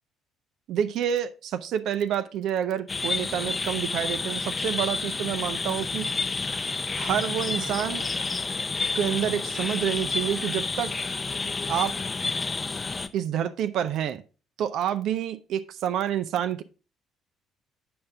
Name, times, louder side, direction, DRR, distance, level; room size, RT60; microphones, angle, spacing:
voice 1, 0.7-6.1 6.9-8.0 8.9-10.9 11.7-11.9 13.1-14.2 14.6-16.6, right 9 dB, 60° right, 11 dB, 0.4 m, -28 dB
sound 1, 2.9-13.1, left 4 dB, 30° left, 0.6 m, -30 dB
8.6 x 5.4 x 3.5 m, 0.33 s
figure-of-eight pair, 50°, 0 cm